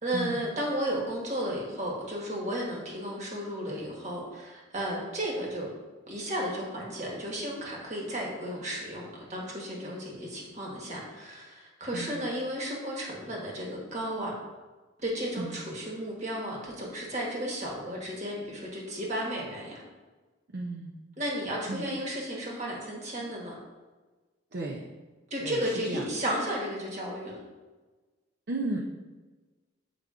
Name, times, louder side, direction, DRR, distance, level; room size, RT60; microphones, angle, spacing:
voice 1, 0.0-5.7 6.1-14.3 15.0-19.8 21.2-23.5 25.3-27.4, equal, 35° right, -2 dB, 1.4 m, -33 dB
voice 2, 20.5-20.9 21.7-21.9 24.5-24.9 25.4-26.1 28.5-28.8, right 2 dB, 50° right, -1 dB, 0.5 m, -34 dB
7.8 x 5.0 x 2.4 m, 1.3 s
head